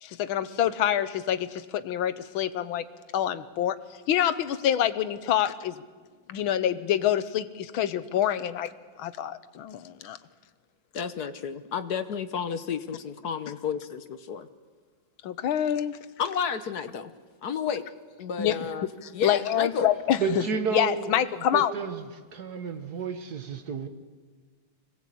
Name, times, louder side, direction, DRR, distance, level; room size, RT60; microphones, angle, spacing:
voice 1, 0.0-2.8 3.1-3.8 4.1-5.8 6.3-8.7 9.0-10.2 15.2-16.0 18.4-18.7 19.0-20.4 20.7-21.7, left 10 dB, 90° left, 13 dB, 1.7 m, -26 dB
voice 2, 10.9-14.5 16.2-17.1 17.4-17.8 18.2-18.9 19.1-19.9, left 7 dB, 60° left, 11 dB, 1.3 m, -31 dB
voice 3, 20.2-21.1 21.5-22.0 22.3-23.9, right 5 dB, 55° right, 8 dB, 1.7 m, -31 dB
25.5 x 18.0 x 8.5 m, 1.5 s
omnidirectional pair, 2.2 m